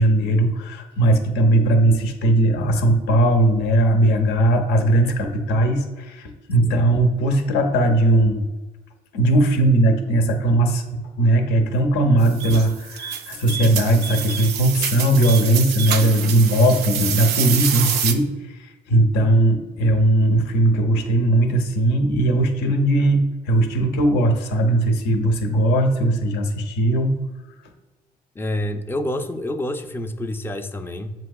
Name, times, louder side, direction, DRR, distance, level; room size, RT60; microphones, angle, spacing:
voice 1, 0.0-8.5 9.1-10.8 11.2-27.2, right 1 dB, 80° left, 6 dB, 0.7 m, -18 dB
sound 1, 12.2-18.1, right 8 dB, 75° right, 0.5 m, -27 dB
voice 2, 28.4-31.1, left 1 dB, 15° left, 7 dB, 0.4 m, -28 dB
7.4 x 2.7 x 2.3 m, 1.2 s
supercardioid pair, 75°, 17 cm